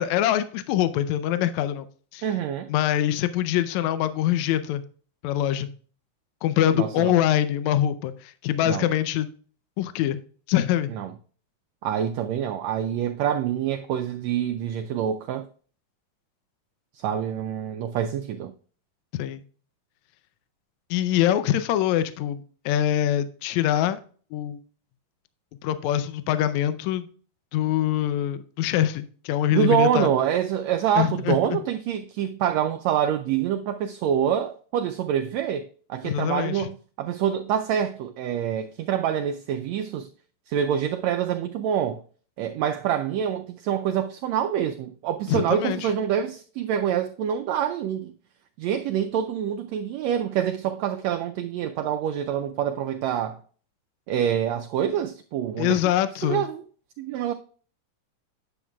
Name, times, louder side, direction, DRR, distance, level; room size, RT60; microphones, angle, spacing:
voice 1, 0.0-1.9 2.1-2.2 2.7-4.8 5.2-5.7 6.4-9.3 9.8-10.2 10.5-10.9 19.1-19.4 20.9-24.0 24.3-24.6 25.6-27.1 27.5-30.1 31.0-31.6 36.0-36.7 45.3-45.9 55.6-56.4, left 11 dB, 80° left, 1.7 m, -24 dB
voice 2, 2.2-2.7 6.7-7.2 8.7-8.9 10.9-11.1 11.8-15.5 16.9-18.5 29.5-40.1 40.5-42.0 42.4-48.1 48.6-53.4 54.1-55.8 56.2-56.6 57.0-57.3, right 9 dB, 90° right, 1.5 m, -26 dB
9.8 x 7.1 x 2.3 m
omnidirectional pair, 3.7 m